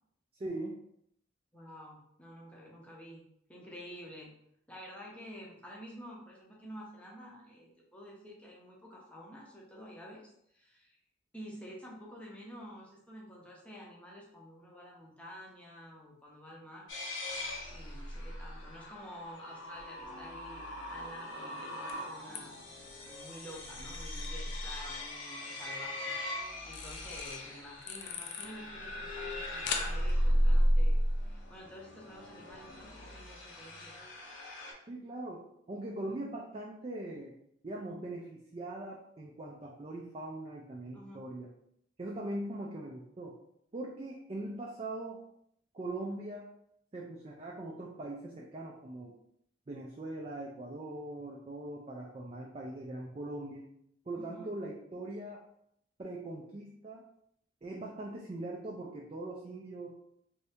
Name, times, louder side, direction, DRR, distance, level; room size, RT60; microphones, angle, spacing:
voice 1, 0.4-0.8 34.9-37.3 37.6-41.5 42.0-43.3 43.7-45.2 45.7-46.5 46.9-49.1 49.7-53.6 54.1-55.4 56.0-57.0 57.6-59.9, right 2 dB, 30° right, -2 dB, 0.4 m, -41 dB
voice 2, 1.5-3.2 3.5-4.3 4.7-11.0 11.3-16.8 17.7-20.6 20.9-22.5 23.0-26.1 26.6-34.0 40.9-41.2 54.2-54.5, equal, 5° left, -4 dB, 0.7 m, -50 dB
sound 1, 16.9-34.7, equal, 90° left, 0.7 m, -35 dB
sound 2, 18.8-32.9, left 6 dB, 60° left, 0.4 m, -48 dB
2.7 x 2.7 x 3.4 m, 0.72 s
head